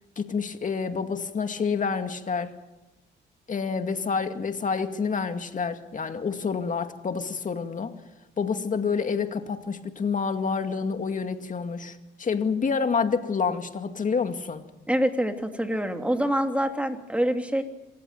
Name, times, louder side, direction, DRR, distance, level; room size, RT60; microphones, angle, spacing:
voice 1, 0.2-2.5 3.5-7.9 8.4-14.6, left 5 dB, 40° left, 7 dB, 2.2 m, -28 dB
voice 2, 14.9-17.6, equal, 5° right, 5 dB, 3.0 m, -25 dB
26.5 x 15.0 x 9.2 m, 1.0 s
cardioid pair, 90°, 20 cm